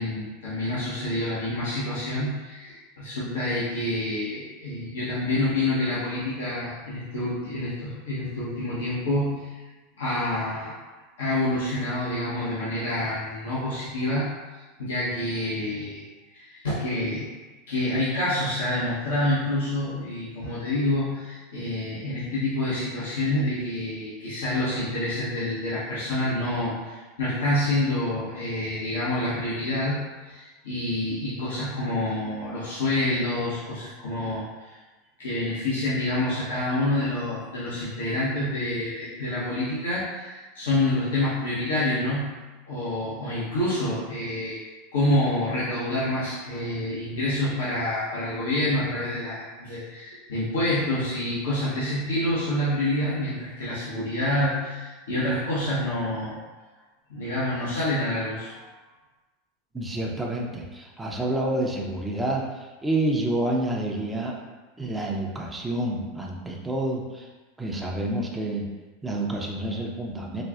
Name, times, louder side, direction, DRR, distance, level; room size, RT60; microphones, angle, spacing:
voice 1, 0.0-9.5 10.0-10.7 11.2-14.3 14.8-16.0 16.3-17.3 17.7-34.8 35.2-42.4 42.7-44.6 44.9-56.4 57.1-58.6, left 1 dB, 80° left, -10 dB, 0.9 m, -27 dB
voice 2, 59.7-64.4 64.8-67.3 67.6-68.7 69.0-70.4, right 1 dB, 10° right, -1 dB, 0.6 m, -28 dB
4.2 x 2.3 x 2.4 m, 1.2 s
hypercardioid pair, 95°, 0 cm